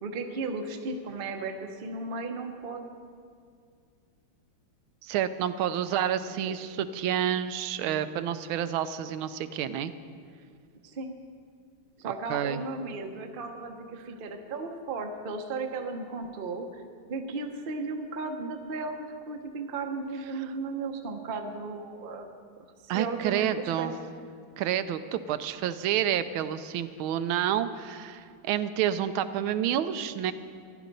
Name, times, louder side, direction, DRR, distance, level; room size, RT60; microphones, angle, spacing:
voice 1, 0.0-2.8 5.8-6.0 6.3-6.5 10.8-11.2 12.0-16.8 17.1-22.3 22.8-23.9, right 3 dB, 45° right, 4 dB, 0.7 m, -35 dB
voice 2, 5.0-9.9 12.0-12.6 22.9-23.9 24.6-30.3, right 10 dB, 80° right, 12 dB, 1.4 m, -29 dB
14.5 x 11.0 x 5.3 m, 2.2 s
omnidirectional pair, 2.3 m